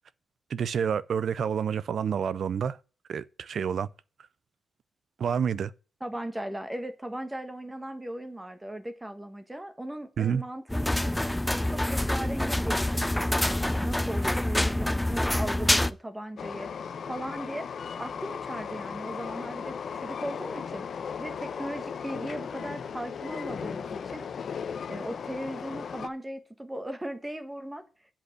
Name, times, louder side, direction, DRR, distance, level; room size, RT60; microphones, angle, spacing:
voice 1, 0.5-2.8 3.1-3.9 5.2-5.7 10.2-10.4, right 7 dB, 60° right, 0.5 m, -28 dB
voice 2, 6.0-11.3 11.7-16.7 17.1-17.7 18.0-20.8 21.2-24.3 24.9-27.8, right 1 dB, 10° right, 1.4 m, -38 dB
sound 1, 10.7-15.9, left 1 dB, 5° left, 0.4 m, -26 dB
Train, 16.4-26.1, left 6 dB, 60° left, 0.8 m, -36 dB
8.6 x 5.3 x 7.9 m
wide cardioid pair, 140°, 0 cm